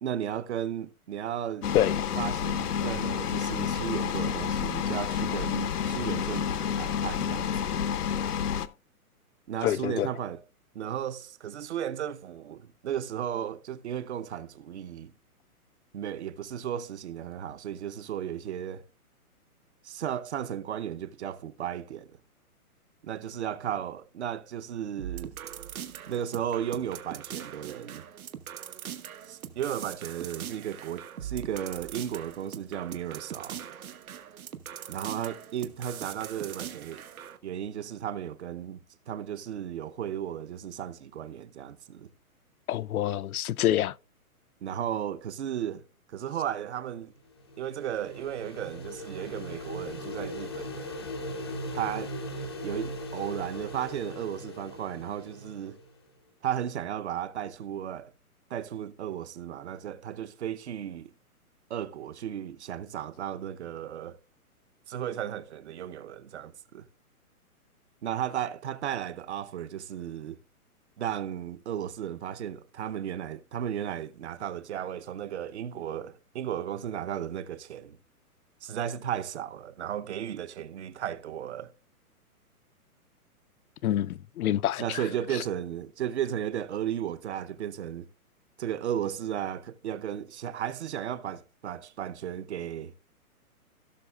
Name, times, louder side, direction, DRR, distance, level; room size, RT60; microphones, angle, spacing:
voice 1, 0.0-1.7 2.1-7.8 9.5-10.4 10.7-15.1 15.9-18.8 19.8-22.2 23.0-25.3 26.1-28.1 29.2-33.6 34.9-37.0 37.4-42.1 44.6-45.8 46.1-47.1 47.6-51.0 51.7-52.2 52.6-55.8 56.4-58.1 58.5-61.1 61.7-64.2 64.9-66.9 68.0-70.4 71.0-78.0 78.6-81.7 84.8-88.1 88.6-92.9, right 10 dB, 50° right, 0.7 m, -35 dB
sound 1, 1.6-8.7, left 8 dB, 90° left, 0.9 m, -29 dB
voice 2, 9.6-10.1 42.7-44.0 83.8-85.0, left 12 dB, 70° left, 0.5 m, -27 dB
sound 2, 25.0-37.4, right 9 dB, 70° right, 1.2 m, -41 dB
sound 3, 47.2-55.9, left 1 dB, 20° left, 0.5 m, -39 dB
17.0 x 6.3 x 2.3 m
hypercardioid pair, 165°, 45 cm